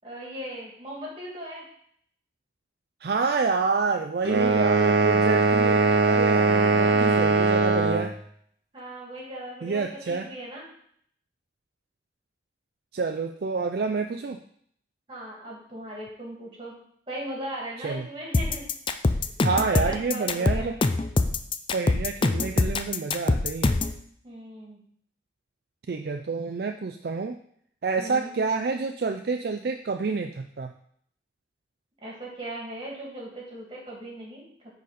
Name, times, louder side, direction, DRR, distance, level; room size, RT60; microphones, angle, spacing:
voice 1, 0.0-1.7 4.2-4.5 6.3-7.0 8.7-10.6 15.1-16.7 17.1-18.7 19.4-20.7 24.2-24.8 28.0-28.3 32.0-34.4, equal, 30° right, -3 dB, 2.4 m, -38 dB
voice 2, 3.0-8.2 9.6-10.3 12.9-14.4 17.8-18.1 19.4-20.8 21.7-23.8 25.9-27.4 27.8-30.7, right 4 dB, 60° right, 5 dB, 0.4 m, -28 dB
sound 1, 4.2-8.1, right 4 dB, 85° right, 0.8 m, -21 dB
sound 2, 18.3-24.0, left 3 dB, 30° left, 0.4 m, -24 dB
9.8 x 4.0 x 4.2 m, 0.65 s
head